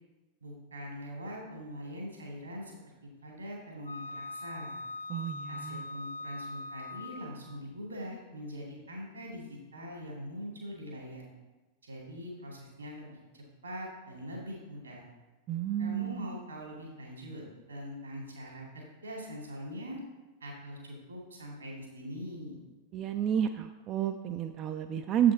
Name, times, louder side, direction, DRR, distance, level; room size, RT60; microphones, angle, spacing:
voice 1, 0.4-2.8 3.2-4.8 5.5-11.2 11.8-15.0 15.8-17.4 17.7-20.0 20.4-22.6, equal, 75° right, -2 dB, 2.1 m, -42 dB
Wind instrument woodwind instrument, 3.9-7.4, left 2 dB, 75° left, 0.5 m, -41 dB
voice 2, 5.1-5.8 15.5-16.2 22.9-25.3, right 9 dB, 35° right, 7 dB, 0.3 m, -30 dB
7.5 x 5.1 x 4.2 m, 1.2 s
figure-of-eight pair, 90°, 0 cm